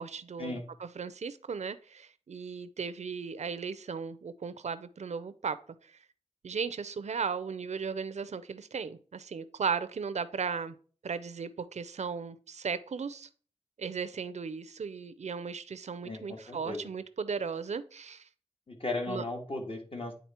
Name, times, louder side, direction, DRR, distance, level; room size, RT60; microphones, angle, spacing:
voice 1, 0.0-0.5 0.8-5.6 6.4-10.7 11.0-13.3 13.8-18.2 19.1-19.2, right 5 dB, 80° right, 0.5 m, -36 dB
voice 2, 16.0-16.9 18.7-20.1, left 2 dB, 55° left, 1.8 m, -36 dB
9.4 x 3.9 x 4.3 m
wide cardioid pair, 65°, 12 cm